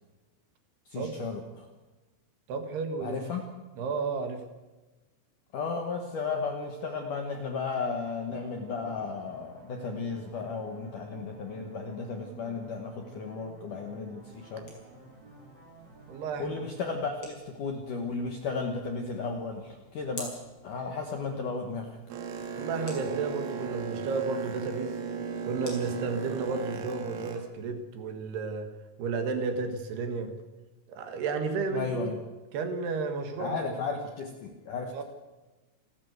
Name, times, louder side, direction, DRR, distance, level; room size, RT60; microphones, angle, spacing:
voice 1, 0.9-1.7 3.0-3.4 5.5-14.7 16.4-20.3 20.6-22.0 31.7-32.2 33.4-35.0, left 4 dB, 65° left, 3 dB, 2.1 m, -34 dB
voice 2, 2.5-3.2 3.8-4.4 16.1-16.6 22.6-24.9 25.4-28.7 29.0-30.3 30.9-32.1 32.5-33.6 34.9-35.0, right 4 dB, 60° right, 7 dB, 3.4 m, -32 dB
sound 1, 8.2-17.1, right 3 dB, 20° right, 6.0 m, -52 dB
sound 2, 14.2-26.6, left 1 dB, 25° left, 6.1 m, -51 dB
Boat Water vehicle, 22.1-27.4, right 5 dB, 80° right, 4.7 m, -36 dB
28.0 x 13.0 x 8.1 m, 1.2 s
omnidirectional pair, 5.8 m